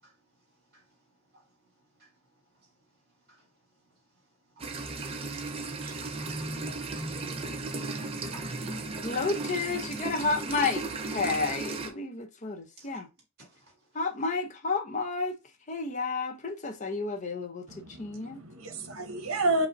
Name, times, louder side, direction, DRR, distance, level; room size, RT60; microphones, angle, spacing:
voice 1, 4.5-4.8 5.4-6.0 6.5-6.7 7.7-8.5 12.8-13.0 13.4-13.7, right 3 dB, 50° right, 2.4 m, -56 dB
sound 1, 4.6-11.9, right 3 dB, 25° right, 0.5 m, -35 dB
voice 2, 8.2-9.1 17.7-19.7, right 2 dB, 75° right, 0.9 m, -32 dB
voice 3, 9.0-13.1 13.9-15.4 15.7-18.4, left 4 dB, 35° left, 0.6 m, -31 dB
5.0 x 2.1 x 3.7 m
head